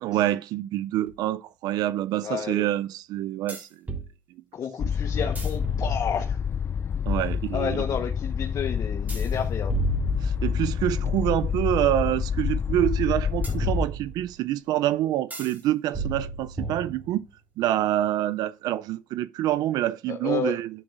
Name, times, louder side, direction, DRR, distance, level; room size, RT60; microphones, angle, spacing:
voice 1, 0.0-3.7 7.1-7.8 10.2-17.3 17.6-20.7, right 13 dB, 85° right, 0.4 m, -26 dB
sound 1, 1.1-1.2 3.5-4.1 5.2-6.5 9.1-10.8 13.4-14.4 15.3-15.6 15.9-17.3, right 3 dB, 25° right, 3.4 m, -34 dB
voice 2, 2.2-2.7 4.5-6.4 7.5-9.7 20.1-20.6, left 7 dB, 60° left, 1.2 m, -31 dB
sound 2, 4.8-13.9, left 7 dB, 40° left, 0.3 m, -27 dB
9.9 x 7.7 x 2.5 m
cardioid pair, 90°, 7 cm